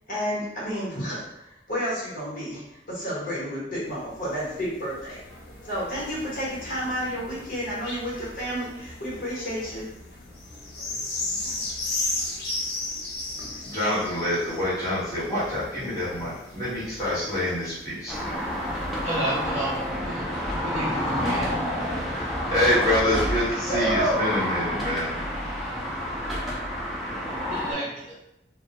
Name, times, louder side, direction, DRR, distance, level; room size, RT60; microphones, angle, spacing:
voice 1, 0.1-5.2 5.6-9.9 23.7-24.2, equal, 50° left, -7 dB, 0.9 m, -30 dB
sound 1, 3.9-19.7 20.3-20.4, left 2 dB, 75° left, 0.5 m, -36 dB
voice 2, 13.6-18.1 22.1-25.2, left 1 dB, 20° left, -11 dB, 1.1 m, -26 dB
sound 2, 18.1-27.7, equal, ahead, 0.3 m, -29 dB
voice 3, 19.0-19.8 20.1-20.3 20.6-21.6 27.5-28.1, right 1 dB, 40° right, -7 dB, 0.6 m, -31 dB
2.1 x 2.1 x 2.8 m, 0.87 s
head